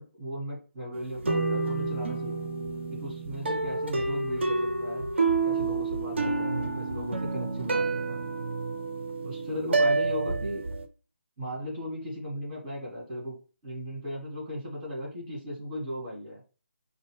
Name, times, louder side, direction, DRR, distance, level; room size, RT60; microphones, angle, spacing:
voice 1, 0.0-2.4 2.9-5.1 5.4-8.2 9.2-10.6 11.4-13.3 13.6-16.4, equal, 20° right, -4 dB, 2.3 m, -37 dB
sound 1, 0.9-10.8, right 3 dB, 55° right, 0.7 m, -29 dB
5.3 x 2.1 x 3.4 m, 0.36 s
figure-of-eight pair, 150°, 7 cm